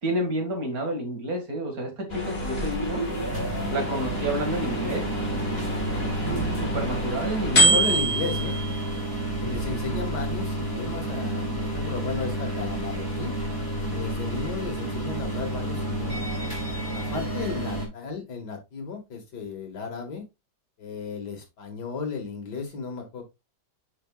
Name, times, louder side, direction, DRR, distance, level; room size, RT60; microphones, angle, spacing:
voice 1, 0.0-3.0 3.7-5.6 6.6-8.0, right 1 dB, 55° right, 2.5 m, -30 dB
sound 1, 2.1-11.0, right 1 dB, 35° left, 2.3 m, -28 dB
sound 2, 2.2-17.9, right 1 dB, 10° left, 2.5 m, -30 dB
voice 2, 7.4-8.6 9.4-13.3 13.9-16.2 16.9-20.2 20.8-23.2, left 5 dB, 75° left, 2.3 m, -34 dB
9.0 x 5.0 x 2.4 m
omnidirectional pair, 1.8 m